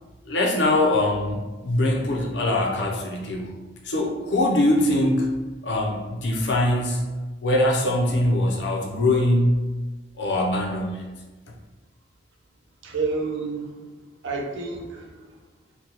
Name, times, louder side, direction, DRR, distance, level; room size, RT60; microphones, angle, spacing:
voice 1, 0.2-3.6 3.8-7.1 7.4-9.7 10.2-11.1, left 1 dB, 70° left, 0 dB, 0.6 m, -22 dB
voice 2, 12.8-13.9 14.2-15.3, right 4 dB, 85° right, 1 dB, 0.6 m, -30 dB
3.7 x 2.3 x 2.9 m, 1.2 s
head